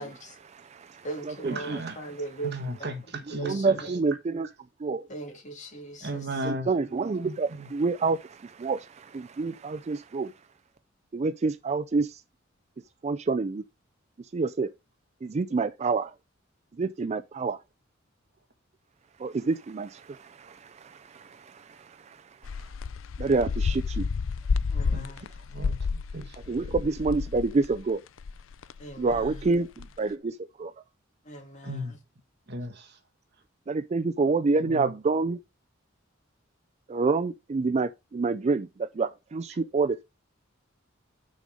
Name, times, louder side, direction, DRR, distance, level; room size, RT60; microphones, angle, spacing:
voice 1, 0.0-0.4 1.0-2.5 3.3-4.0 5.1-6.3 24.7-25.3 28.8-29.4 31.2-32.0, right 2 dB, 40° left, 2.4 m, -39 dB
voice 2, 0.5-1.8 3.4-4.5 4.8-5.1 6.4-10.3 11.1-12.2 13.0-13.6 14.3-14.7 15.2-16.1 16.8-17.6 19.2-22.2 23.2-24.1 26.5-28.0 29.0-30.7 33.7-35.4 36.9-40.0, right 4 dB, 35° right, 0.4 m, -28 dB
voice 3, 1.4-2.0 2.4-3.9 6.0-6.7 7.2-7.7 24.9-26.4 29.2-29.3 31.6-32.0 32.5-33.0 34.6-34.9 39.5-39.6, right 1 dB, 55° right, 1.6 m, -36 dB
sound 1, 22.4-27.9 28.2-29.9, left 5 dB, 80° left, 0.5 m, -31 dB
6.4 x 4.9 x 5.3 m
head